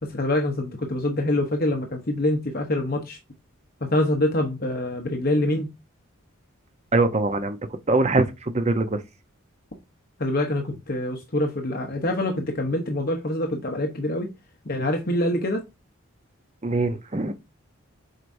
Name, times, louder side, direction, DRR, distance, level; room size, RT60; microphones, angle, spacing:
voice 1, 0.0-3.2 3.8-5.7 10.2-14.3 14.6-15.6, left 1 dB, 45° left, 1.0 m, -25 dB
voice 2, 6.9-7.6 7.9-9.0 16.6-17.3, right 2 dB, 30° right, 0.8 m, -22 dB
7.8 x 4.8 x 2.7 m
head